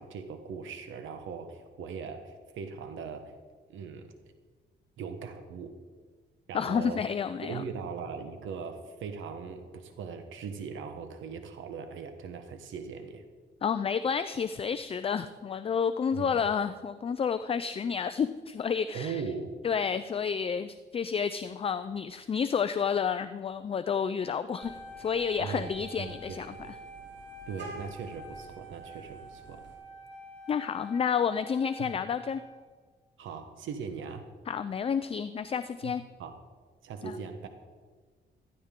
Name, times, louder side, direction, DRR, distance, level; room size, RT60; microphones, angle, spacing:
voice 1, 0.0-3.3 3.7-4.1 5.0-5.7 6.5-7.0 7.4-13.2 16.1-16.3 18.9-19.5 25.4-25.7 26.0-26.7 27.5-29.6 31.8-32.0 33.2-34.3 35.8-36.3 36.8-37.5, right 6 dB, 85° right, 7 dB, 1.1 m, -39 dB
voice 2, 6.5-7.6 13.6-19.2 19.6-26.6 30.5-32.4 34.5-36.0 37.0-37.2, left 6 dB, 30° left, 11 dB, 0.4 m, -30 dB
Wind instrument woodwind instrument, 24.5-32.8, equal, 30° right, 2.5 m, -47 dB
Vehicle horn car horn honking, 24.6-29.7, right 2 dB, 70° right, 3.8 m, -51 dB
15.0 x 14.0 x 3.7 m, 1.5 s
cardioid pair, 120°, 20 cm